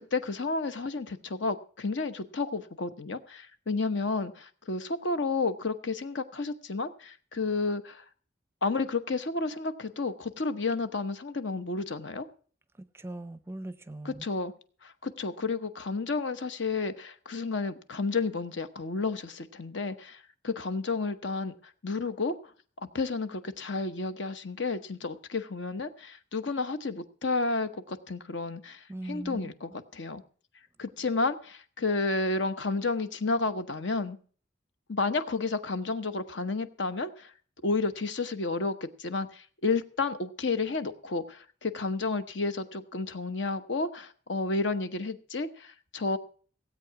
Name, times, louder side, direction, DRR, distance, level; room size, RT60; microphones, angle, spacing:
voice 1, 0.0-8.0 8.6-12.3 14.0-14.5 14.8-21.5 21.8-22.4 22.8-30.2 30.8-34.2 34.9-37.3 37.6-46.2, left 3 dB, 70° left, 10 dB, 1.0 m, -31 dB
voice 2, 12.9-14.2 28.9-29.5, right 1 dB, 15° right, 13 dB, 0.5 m, -39 dB
16.5 x 8.3 x 5.8 m, 0.43 s
head